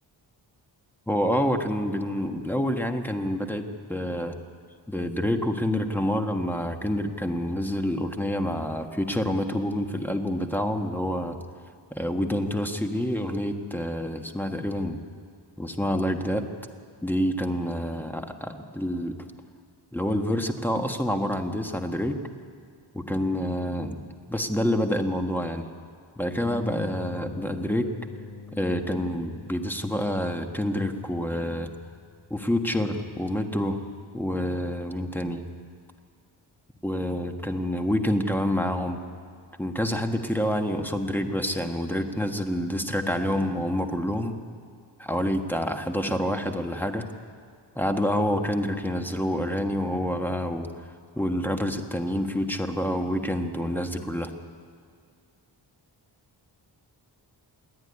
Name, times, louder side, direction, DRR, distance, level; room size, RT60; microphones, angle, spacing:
voice 1, 1.1-4.4 4.9-11.4 11.9-15.0 15.6-16.4 17.0-19.2 19.9-22.2 22.9-24.0 24.3-25.7 26.2-27.9 28.5-31.7 32.3-33.8 34.1-35.4 36.8-39.0 39.6-44.3 45.0-47.0 47.7-50.7 51.2-54.3, equal, 5° left, 5 dB, 1.4 m, -27 dB
sound 1, 26.4-34.2, left 6 dB, 30° left, 1.3 m, -44 dB
27.5 x 10.5 x 9.6 m, 2.2 s
wide cardioid pair, 120°, 44 cm